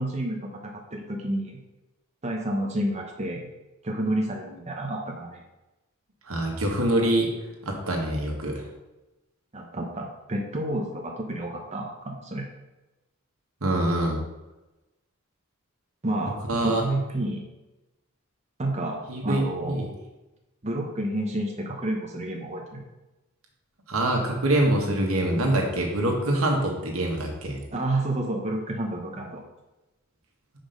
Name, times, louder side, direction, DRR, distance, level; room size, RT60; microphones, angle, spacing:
voice 1, 0.0-1.6 2.2-3.5 3.8-5.4 9.5-12.5 16.0-16.3 16.6-17.4 18.6-19.8 20.6-22.8 27.7-29.4, right 1 dB, 30° right, 0 dB, 0.9 m, -30 dB
voice 2, 6.3-7.3 7.6-8.6 13.6-14.2 16.5-16.8 19.1-19.9 23.9-27.6, right 1 dB, 80° right, 1 dB, 1.6 m, -25 dB
6.0 x 5.1 x 5.2 m, 1.0 s
head